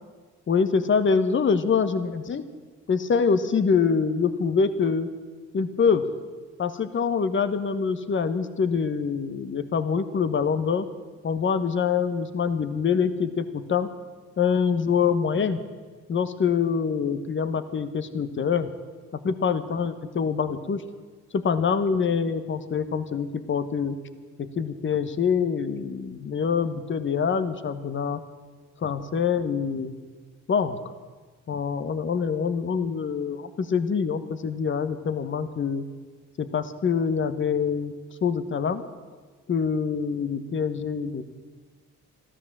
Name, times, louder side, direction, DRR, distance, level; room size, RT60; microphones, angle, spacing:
voice 1, 0.5-2.5 2.9-5.1 5.5-6.0 6.6-10.9 11.2-13.9 14.4-15.6 16.1-18.7 19.2-20.8 21.3-24.0 24.4-28.2 28.8-29.9 30.5-30.8 31.5-35.8 36.4-37.9 38.2-38.8 39.5-41.2, left 6 dB, 40° left, 11 dB, 1.1 m, -25 dB
14.0 x 13.0 x 7.4 m, 1.5 s
cardioid pair, 90°, 30 cm